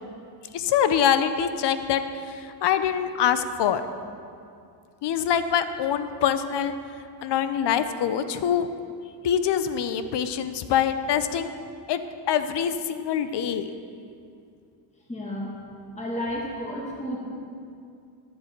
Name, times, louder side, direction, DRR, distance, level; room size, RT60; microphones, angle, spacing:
voice 1, 0.5-3.8 5.0-6.7 7.2-8.7 9.2-11.5 11.9-12.0 12.3-13.7, left 9 dB, 55° left, 11 dB, 0.7 m, -24 dB
voice 2, 15.1-15.6 16.0-17.3, equal, 15° left, -4 dB, 2.0 m, -32 dB
12.0 x 7.4 x 4.5 m, 2.4 s
cardioid pair, 95°, 50 cm